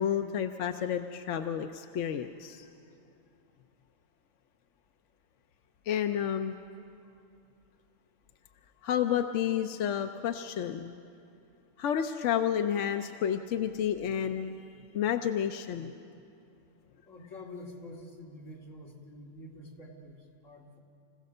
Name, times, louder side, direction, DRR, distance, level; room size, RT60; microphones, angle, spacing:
voice 1, 0.0-2.7 5.9-6.6 8.8-10.9 11.8-15.9, left 9 dB, 75° left, 7 dB, 1.0 m, -30 dB
voice 2, 17.0-20.8, left 1 dB, 90° left, -2 dB, 2.9 m, -47 dB
26.0 x 16.0 x 6.6 m, 2.6 s
omnidirectional pair, 1.3 m